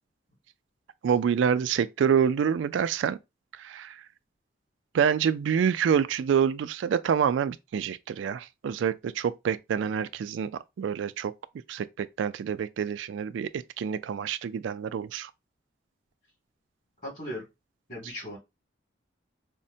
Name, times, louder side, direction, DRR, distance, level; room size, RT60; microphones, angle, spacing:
voice 1, 1.0-3.2 3.6-4.0 4.9-11.3 11.7-15.3, right 7 dB, 80° right, 0.3 m, -27 dB
voice 2, 17.0-17.4 17.9-18.4, equal, 45° left, 2.4 m, -37 dB
5.1 x 2.1 x 2.7 m
head